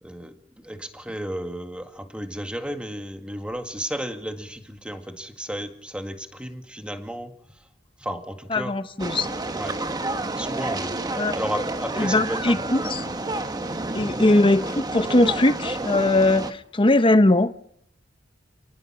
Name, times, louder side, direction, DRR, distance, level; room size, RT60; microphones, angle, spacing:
voice 1, 0.0-7.3 8.0-8.8 9.5-9.8 10.4-11.0 11.3-12.6, equal, 5° right, 2.0 m, -33 dB
voice 2, 8.5-9.3 11.2-11.3 12.0-13.0 13.9-17.5, left 2 dB, 30° left, 0.9 m, -20 dB
sound 1, 9.0-16.5, right 2 dB, 20° right, 1.2 m, -29 dB
28.5 x 19.5 x 6.2 m
head